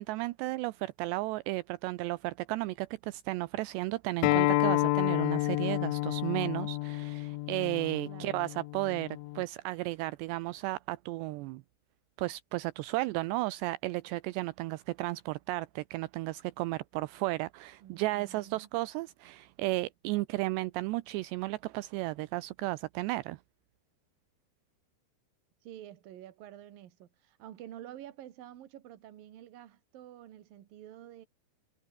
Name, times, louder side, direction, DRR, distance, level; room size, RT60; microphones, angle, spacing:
voice 1, 0.0-11.6 12.2-23.4, right 19 dB, 80° right, 2.7 m, -34 dB
Acoustic guitar, 4.2-9.4, left 20 dB, 85° left, 3.2 m, -30 dB
voice 2, 8.0-8.4 17.8-18.7 25.6-31.3, right 12 dB, 60° right, 3.1 m, -49 dB
omnidirectional pair, 5.4 m